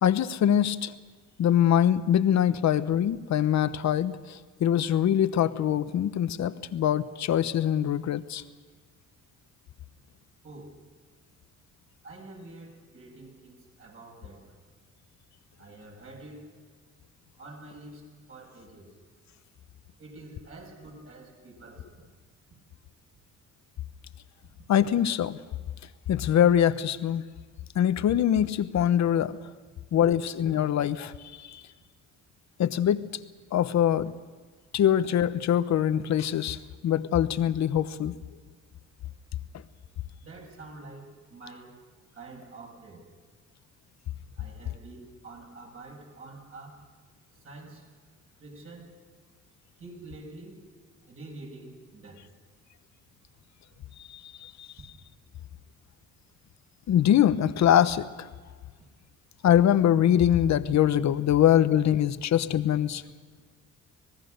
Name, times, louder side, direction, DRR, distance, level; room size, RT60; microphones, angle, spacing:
voice 1, 0.0-0.9 1.4-8.4 24.7-25.4 26.1-27.2 27.7-29.4 29.9-31.6 32.6-33.0 33.5-34.1 34.7-38.2 54.0-54.7 56.9-58.3 59.4-63.0, left 10 dB, 65° left, 13 dB, 1.1 m, -23 dB
voice 2, 10.4-10.8 12.0-14.6 15.6-16.6 17.4-19.0 20.0-22.0 40.2-41.8 42.1-43.1 44.4-46.9 47.4-47.9 48.4-49.0 49.8-50.7 51.1-52.3, right 2 dB, 45° right, 1 dB, 7.1 m, -47 dB
26.0 x 19.0 x 6.6 m, 1.6 s
cardioid pair, 90°, 30 cm